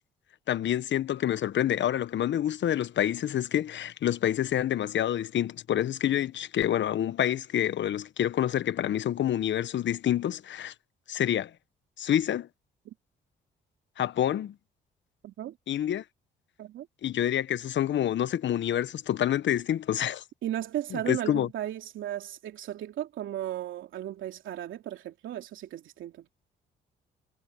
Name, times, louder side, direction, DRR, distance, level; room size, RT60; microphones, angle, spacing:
voice 1, 0.5-10.7 11.1-11.5 12.0-12.5 14.0-14.5 15.7-16.0 17.0-20.2 20.9-21.5, left 11 dB, 60° left, 1.2 m, -27 dB
voice 2, 15.2-15.6 16.6-16.9 20.4-26.1, right 12 dB, 70° right, 2.8 m, -35 dB
supercardioid pair, 55°, 21 cm